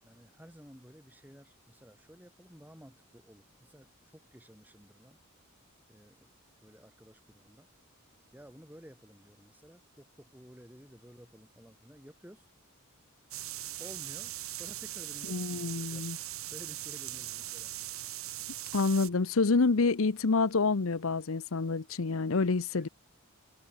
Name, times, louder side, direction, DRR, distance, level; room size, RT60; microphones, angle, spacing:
voice 1, 0.0-5.2 5.9-6.3 6.6-7.7 8.3-12.5 13.8-16.1 16.4-17.7 22.7-22.9, equal, 10° right, 7.4 m, -53 dB
sound 1, 13.3-19.1, right 14 dB, 70° right, 6.7 m, -40 dB
voice 2, 15.3-16.2 18.7-22.9, left 4 dB, 65° left, 0.8 m, -27 dB
head